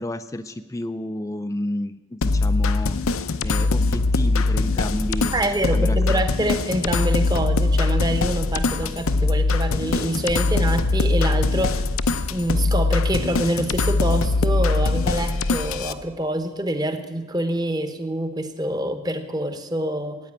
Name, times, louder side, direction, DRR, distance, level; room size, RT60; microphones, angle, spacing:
voice 1, 0.0-5.3 5.7-6.2 8.8-8.9, left 1 dB, 15° left, 10 dB, 0.4 m, -31 dB
sound 1, 2.2-15.9, left 3 dB, 75° left, 0.6 m, -22 dB
voice 2, 5.3-11.9 12.3-20.2, right 1 dB, 20° right, 8 dB, 1.0 m, -26 dB
15.5 x 9.2 x 8.8 m, 1.2 s
head